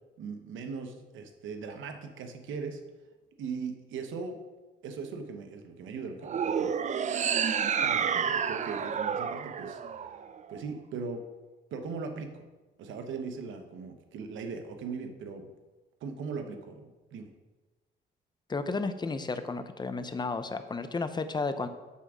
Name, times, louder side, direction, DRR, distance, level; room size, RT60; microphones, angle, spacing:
voice 1, 0.2-2.8 3.4-4.4 4.8-6.8 7.8-9.8 10.5-11.2 11.7-12.4 12.8-15.5 16.0-17.3, right 5 dB, 75° right, 6 dB, 0.9 m, -39 dB
sound 1, 6.2-10.6, right 7 dB, 35° right, 0.4 m, -30 dB
voice 2, 18.5-21.7, left 3 dB, 20° left, 10 dB, 0.6 m, -32 dB
8.3 x 3.5 x 6.2 m, 1.2 s
cardioid pair, 90°, 20 cm